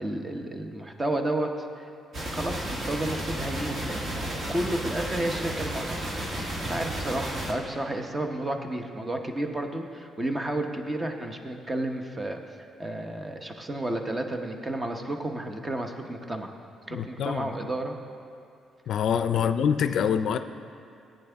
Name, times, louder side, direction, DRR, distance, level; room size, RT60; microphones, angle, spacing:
voice 1, 0.0-1.9 2.3-6.1 6.6-16.5 16.9-18.0 19.3-19.5, right 1 dB, 20° right, 4 dB, 0.9 m, -32 dB
sound 1, 2.1-7.5, right 1 dB, 50° right, 1.6 m, -32 dB
voice 2, 16.9-17.5 18.9-20.4, left 8 dB, 70° left, 10 dB, 0.4 m, -25 dB
15.0 x 9.1 x 3.5 m, 2.5 s
cardioid pair, 90°, 0 cm